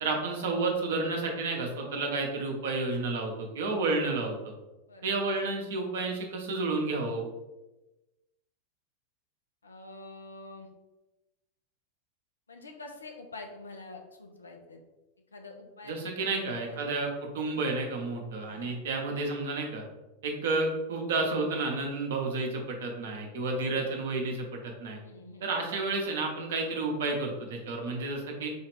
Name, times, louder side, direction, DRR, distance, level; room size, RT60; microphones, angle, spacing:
voice 1, 0.0-4.3 5.0-7.3 15.8-19.8 20.2-25.0 25.4-28.5, right 3 dB, 60° right, 2 dB, 0.8 m, -31 dB
voice 2, 4.9-5.3 9.6-10.7 12.5-14.8 15.3-17.0 18.4-18.8 23.5-23.9 25.0-25.5, left 3 dB, 75° left, 3 dB, 0.5 m, -46 dB
4.2 x 2.4 x 3.4 m, 1.0 s
figure-of-eight pair, 90°, 0 cm